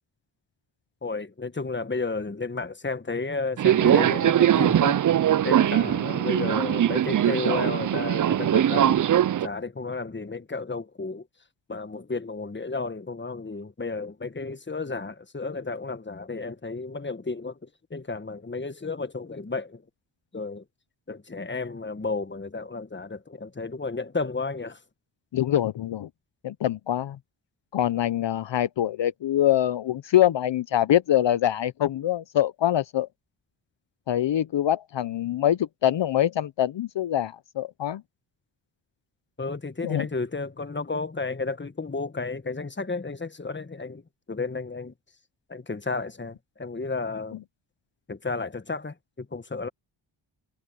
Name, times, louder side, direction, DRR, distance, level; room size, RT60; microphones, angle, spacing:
voice 1, 1.0-5.0 5.4-11.3 11.7-19.9 20.3-20.6 21.1-24.8 39.4-44.9 45.5-47.4 48.1-49.7, left 3 dB, 25° left, 1.5 m, -32 dB
Subway metro underground, 3.6-9.5, right 11 dB, 40° right, 0.5 m, -21 dB
voice 2, 25.3-26.1 26.4-27.2 27.7-33.1 34.1-38.0 39.8-40.1, left 11 dB, 65° left, 0.8 m, -24 dB
cardioid pair, 45°, 47 cm